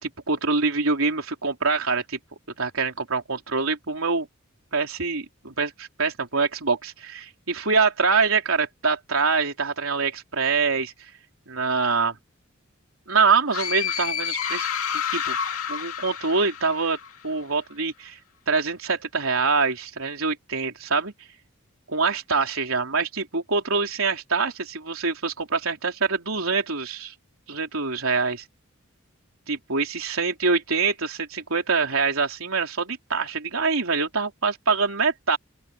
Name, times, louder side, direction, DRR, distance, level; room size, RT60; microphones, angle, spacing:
voice 1, 0.0-2.2 2.6-4.3 4.7-11.1 11.5-12.2 13.1-14.7 14.9-15.4 15.7-17.0 17.2-18.2 18.5-21.1 21.9-27.1 27.5-28.4 29.5-35.4, right 4 dB, 80° right, 3.7 m, -25 dB
sound 1, 13.5-17.2, left 8 dB, 90° left, 2.4 m, -29 dB
open air
head